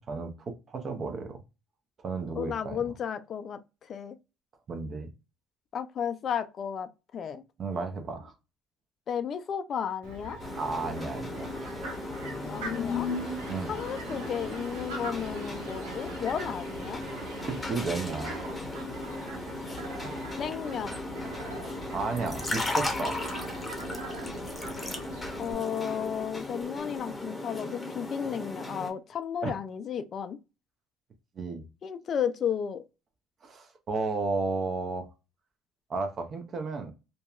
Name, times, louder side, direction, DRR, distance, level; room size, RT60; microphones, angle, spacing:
voice 1, 0.0-1.4 2.0-2.9 4.7-5.1 7.6-8.3 10.6-11.5 13.5-13.7 17.5-18.4 21.9-23.2 29.4-29.6 31.4-31.6 33.4-35.1 35.9-36.9, right 4 dB, 45° right, 0.7 m, -33 dB
voice 2, 2.4-4.2 5.7-7.4 9.1-10.4 12.5-13.1 13.7-17.0 20.4-21.0 25.4-30.4 31.8-32.9, left 8 dB, 50° left, 0.3 m, -33 dB
Fowl, 10.0-25.5, right 2 dB, 85° right, 0.8 m, -42 dB
sound 1, 10.4-28.9, left 2 dB, 15° left, 0.8 m, -36 dB
2.7 x 2.2 x 2.4 m
supercardioid pair, 75°, 0 cm